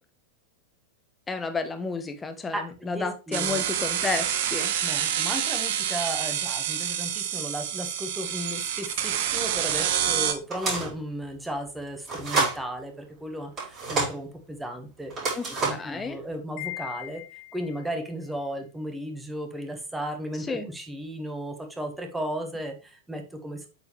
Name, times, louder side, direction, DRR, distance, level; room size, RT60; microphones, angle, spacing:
voice 1, 1.3-4.7 15.3-16.2 20.4-20.7, left 4 dB, 15° left, 1.1 m, -32 dB
voice 2, 2.5-3.6 4.8-15.1 15.5-17.2 17.5-23.6, equal, 5° right, 1.5 m, -35 dB
sound 1, 3.3-10.3, right 10 dB, 55° right, 0.8 m, -27 dB
sound 2, 10.5-11.0 12.1-12.6 13.6-14.2 15.1-15.9, right 3 dB, 30° right, 4.3 m, -28 dB
Wind chime, 16.6-18.0, left 17 dB, 45° left, 1.2 m, -39 dB
8.3 x 4.8 x 3.3 m
figure-of-eight pair, 90°, 0 cm